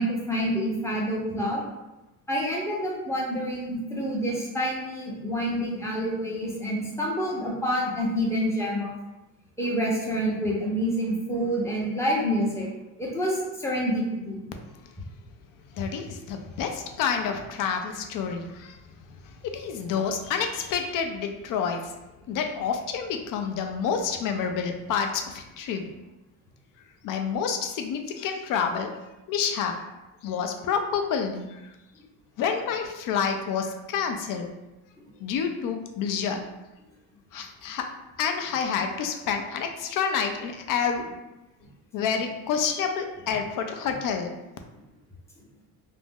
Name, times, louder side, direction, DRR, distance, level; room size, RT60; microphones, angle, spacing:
voice 1, 0.0-1.6 2.3-8.9 9.6-12.7 13.0-14.4, equal, 5° left, -4 dB, 0.6 m, -27 dB
voice 2, 15.7-21.9 22.3-25.9 27.0-28.9 29.3-29.7 30.2-31.7 32.4-34.5 35.2-36.4 37.3-37.8 38.2-41.0 41.9-44.3, left 6 dB, 55° left, 5 dB, 0.5 m, -28 dB
2.5 x 2.0 x 3.5 m, 1.0 s
cardioid pair, 125°, 41 cm